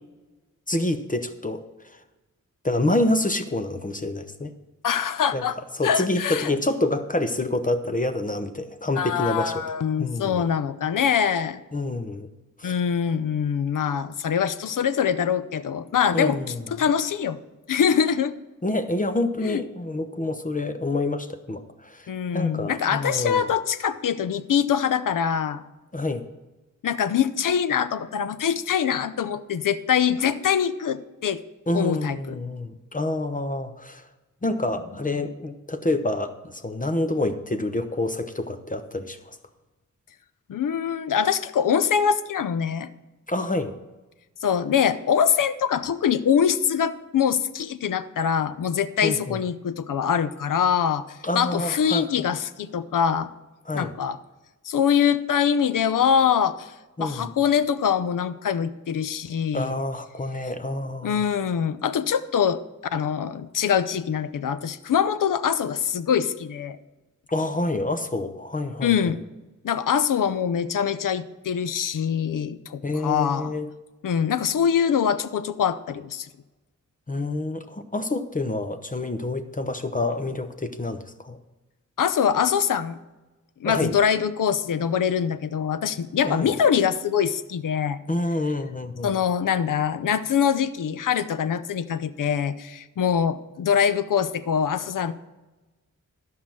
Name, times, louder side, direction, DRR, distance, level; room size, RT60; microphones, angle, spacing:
voice 1, 0.7-1.6 2.6-4.5 5.3-5.5 5.8-9.6 10.0-10.5 11.7-12.3 12.6-12.7 16.1-16.6 18.6-22.1 22.3-23.5 25.9-26.3 31.7-34.0 34.4-39.4 43.3-43.7 49.0-49.4 51.2-52.0 53.7-53.9 57.0-57.3 59.5-61.2 67.3-68.9 72.8-73.7 77.1-81.4 83.6-83.9 86.2-86.5 88.1-89.1, left 2 dB, 25° left, 8 dB, 0.8 m, -27 dB
voice 2, 4.8-5.6 5.8-6.5 9.0-11.6 12.6-17.4 17.7-18.3 19.4-19.6 22.1-25.6 26.8-31.4 31.7-32.4 40.5-42.9 44.4-53.3 53.7-54.2 54.6-59.7 61.0-62.6 62.9-66.8 68.8-69.2 69.6-73.6 74.0-76.3 82.0-83.0 83.6-88.0 89.0-95.1, left 8 dB, 85° left, 13 dB, 0.6 m, -24 dB
12.5 x 5.7 x 7.6 m, 1.1 s
wide cardioid pair, 100°, 31 cm